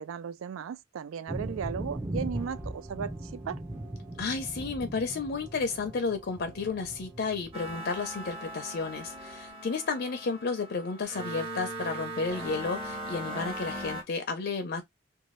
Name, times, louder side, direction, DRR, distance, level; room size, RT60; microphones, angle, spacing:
voice 1, 0.0-3.6, right 7 dB, 90° right, 0.3 m, -36 dB
sound 1, 1.3-9.5, right 1 dB, 10° right, 0.5 m, -40 dB
voice 2, 4.2-14.8, left 4 dB, 55° left, 0.5 m, -32 dB
sound 2, 7.5-14.0, right 1 dB, 30° right, 1.0 m, -39 dB
2.6 x 2.2 x 3.1 m
head